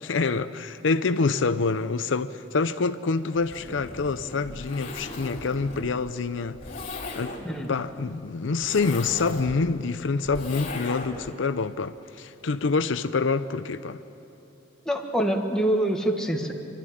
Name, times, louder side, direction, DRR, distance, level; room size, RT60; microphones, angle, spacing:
voice 1, 0.0-6.6 7.2-7.4 7.7-14.0, left 4 dB, 75° left, 0.6 m, -26 dB
Zipper (clothing), 3.4-11.3, left 2 dB, 45° left, 3.2 m, -38 dB
voice 2, 14.8-16.5, right 1 dB, 5° left, 1.6 m, -25 dB
26.5 x 13.0 x 10.0 m
head